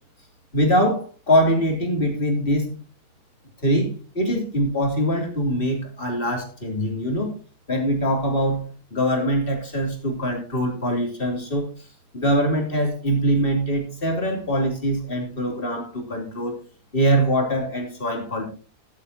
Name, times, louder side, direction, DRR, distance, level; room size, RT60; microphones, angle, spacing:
voice 1, 0.5-2.8 3.6-7.3 7.7-11.7 12.1-16.6 16.9-18.4, equal, 35° left, 1 dB, 3.4 m, -23 dB
15.0 x 11.5 x 2.9 m, 0.37 s
omnidirectional pair, 1.6 m